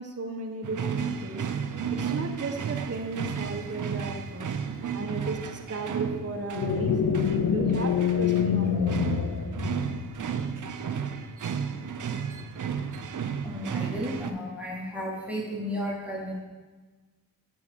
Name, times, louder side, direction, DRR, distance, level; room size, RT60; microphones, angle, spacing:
voice 1, 0.0-1.5 1.9-4.5 4.9-7.2 7.5-9.3, right 3 dB, 45° right, 1 dB, 1.1 m, -35 dB
sound 1, 0.6-14.3, right 6 dB, 60° right, 0.7 m, -33 dB
sound 2, 6.5-10.2, left 7 dB, 65° left, 0.7 m, -26 dB
voice 2, 13.4-16.4, equal, 5° right, -3 dB, 2.0 m, -33 dB
8.5 x 5.5 x 4.7 m, 1.3 s
cardioid pair, 40°, 35 cm